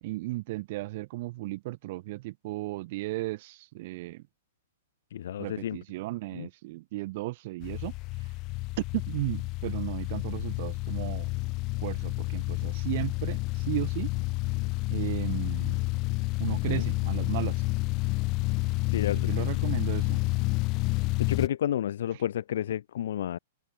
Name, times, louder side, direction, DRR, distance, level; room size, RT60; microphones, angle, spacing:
voice 1, 0.0-4.2 5.4-7.9 8.8-11.3 11.8-14.1 14.9-15.8 16.4-17.6 19.1-20.2, right 19 dB, 40° right, 1.7 m, -35 dB
voice 2, 5.1-5.8 6.3-6.5 16.7-16.9 18.9-19.6 21.2-23.4, left 10 dB, 60° left, 2.6 m, -31 dB
sound 1, 7.6-21.5, left 24 dB, 25° left, 0.8 m, -29 dB
open air
hypercardioid pair, 170°, 0 cm